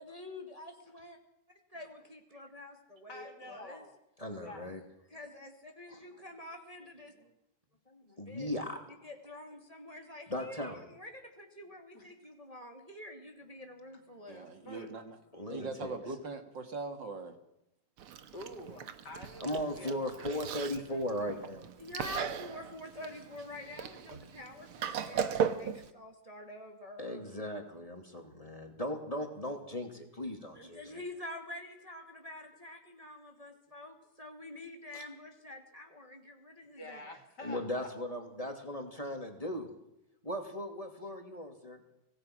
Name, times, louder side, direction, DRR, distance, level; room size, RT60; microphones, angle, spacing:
voice 1, 0.0-1.1 1.7-3.8 5.1-7.1 8.3-8.5 9.0-14.5 21.8-27.2 30.5-37.1, left 1 dB, 15° right, 3 dB, 2.1 m, -47 dB
voice 2, 3.1-4.0 4.4-4.7 11.9-12.1 14.6-14.9 18.3-21.0 36.8-37.9, left 1 dB, 50° left, 5 dB, 3.6 m, -48 dB
voice 3, 4.2-4.8 5.9-6.0 7.9-9.0 10.3-10.8 15.3-16.0 19.4-21.8 27.0-31.0 34.9-35.0 37.4-39.7 40.2-41.8, left 1 dB, 15° left, 5 dB, 2.7 m, -38 dB
voice 4, 14.3-15.2 15.5-17.4, right 3 dB, 55° right, 7 dB, 2.4 m, -41 dB
Chewing mastication, 18.0-25.9, right 8 dB, 80° right, 2.2 m, -38 dB
25.5 x 18.0 x 6.2 m, 0.83 s
omnidirectional pair, 2.4 m